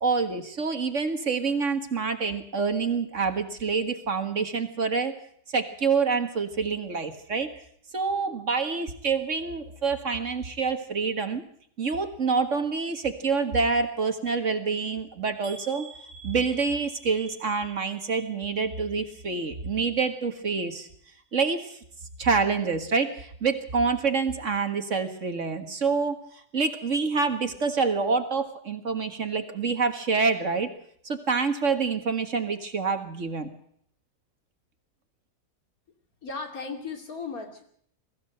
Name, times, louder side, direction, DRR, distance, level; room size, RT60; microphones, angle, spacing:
voice 1, 0.0-5.2 5.5-7.5 7.9-11.4 11.8-15.9 16.2-20.9 21.3-21.8 22.2-26.3 26.5-30.7 31.0-33.5, right 4 dB, 50° right, 8 dB, 2.0 m, -27 dB
sound 1, 15.4-19.4 19.7-20.3 20.8-20.9 21.3-21.4, right 3 dB, 50° left, 6.0 m, -49 dB
voice 2, 36.2-37.6, left 4 dB, 65° left, 4 dB, 3.2 m, -36 dB
21.5 x 15.0 x 7.9 m, 0.64 s
omnidirectional pair, 1.7 m